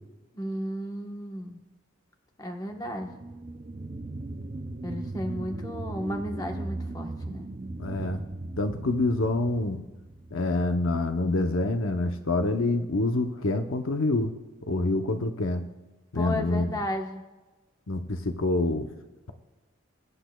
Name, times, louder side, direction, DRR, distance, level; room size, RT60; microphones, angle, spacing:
voice 1, 0.3-1.6 2.4-3.1 4.8-7.5 16.1-17.2, equal, 15° left, 2 dB, 1.1 m, -34 dB
sound 1, 2.7-11.8 12.2-12.3, right 2 dB, 30° right, 0.5 m, -38 dB
voice 2, 7.8-8.2 8.6-9.8 10.3-14.3 14.6-15.7 16.1-16.7 17.9-18.9, left 2 dB, 70° left, 7 dB, 0.8 m, -26 dB
22.0 x 10.0 x 2.3 m, 1.1 s
head